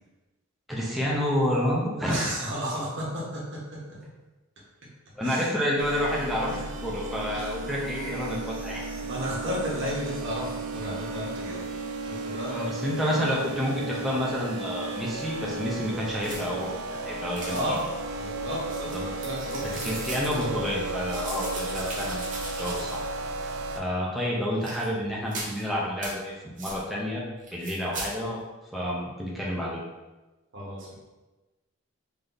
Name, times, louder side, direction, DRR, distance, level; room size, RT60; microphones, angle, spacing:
voice 1, 0.7-2.3 5.2-6.5 6.8-8.8 12.5-17.6 18.9-19.0 19.6-22.2 22.6-23.1 23.7-27.2 27.5-28.4 28.7-29.8, equal, ahead, -5 dB, 0.6 m, -29 dB
voice 2, 2.1-3.4 5.2-5.5 6.4-6.7 7.3-7.6 8.4-8.5 9.0-11.7 12.0-12.5 17.4-17.8 18.1-19.6 30.5-30.9, equal, 55° right, -5 dB, 1.2 m, -33 dB
sound 1, 5.8-23.8, right 2 dB, 85° right, 0.4 m, -34 dB
sound 2, 16.2-16.7 17.3-17.9 18.5-20.5 21.1-23.2 23.4-23.5 24.5-24.8 25.3-25.6 26.0-26.1 26.6-26.8 27.4-28.1, right 2 dB, 35° right, 0.9 m, -38 dB
3.3 x 2.8 x 3.9 m, 1.1 s
head